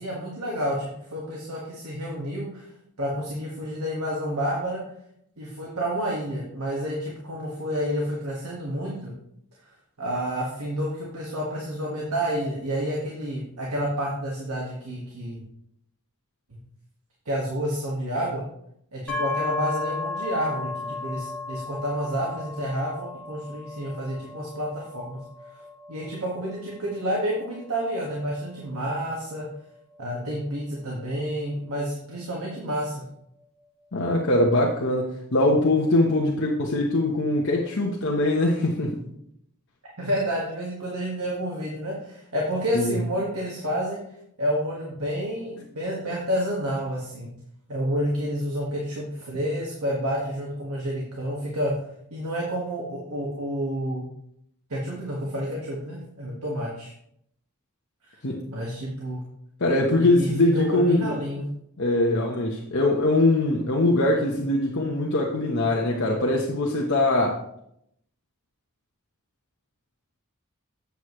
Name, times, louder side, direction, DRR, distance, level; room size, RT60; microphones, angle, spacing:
voice 1, 0.0-2.7 3.0-4.8 5.4-9.1 10.0-15.4 16.5-16.6 17.2-18.4 18.9-25.2 25.9-29.5 30.0-33.0 40.0-44.0 44.4-47.3 47.7-51.7 52.1-54.0 54.7-56.9 58.0-58.1 58.5-59.2 60.0-61.5, equal, 70° right, -4 dB, 1.7 m, -29 dB
sound 1, 19.1-32.8, left 3 dB, 5° left, 1.9 m, -36 dB
voice 2, 33.9-39.0 42.7-42.9 58.2-58.4 59.6-61.1 61.8-67.4, left 2 dB, 55° left, -2 dB, 1.0 m, -22 dB
8.2 x 7.9 x 3.2 m, 0.75 s
head